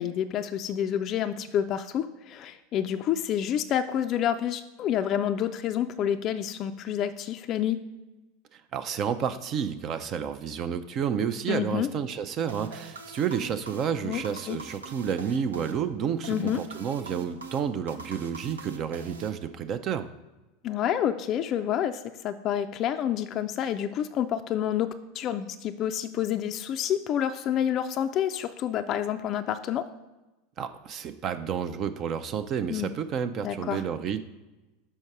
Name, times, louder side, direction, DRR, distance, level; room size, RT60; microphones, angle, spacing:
voice 1, 0.0-7.8 11.5-11.9 14.0-14.2 14.5-14.6 16.3-16.6 20.6-24.9 25.1-29.8 32.7-32.9 33.4-33.8, left 10 dB, 40° left, 8 dB, 0.3 m, -28 dB
voice 2, 8.5-20.1 30.6-34.2, right 7 dB, 40° right, 10 dB, 0.4 m, -30 dB
sound 1, 12.5-19.9, right 4 dB, 75° right, 0.6 m, -43 dB
6.4 x 4.4 x 4.7 m, 1.1 s
figure-of-eight pair, 85°, 0 cm